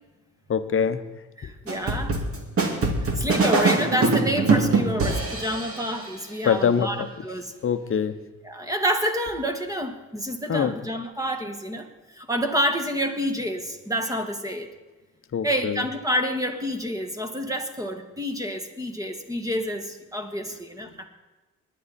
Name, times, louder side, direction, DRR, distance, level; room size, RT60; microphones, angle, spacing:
voice 1, 0.5-1.0 6.4-7.1 7.6-8.1 10.5-10.7 15.3-15.8, left 7 dB, 45° left, 11 dB, 0.9 m, -23 dB
voice 2, 1.4-2.2 3.2-7.5 8.4-14.7 15.4-21.1, equal, 10° right, 5 dB, 1.8 m, -28 dB
sound 1, 1.7-6.0, right 3 dB, 50° right, 2.4 m, -23 dB
20.5 x 10.0 x 4.2 m, 1.2 s
cardioid pair, 90°, 30 cm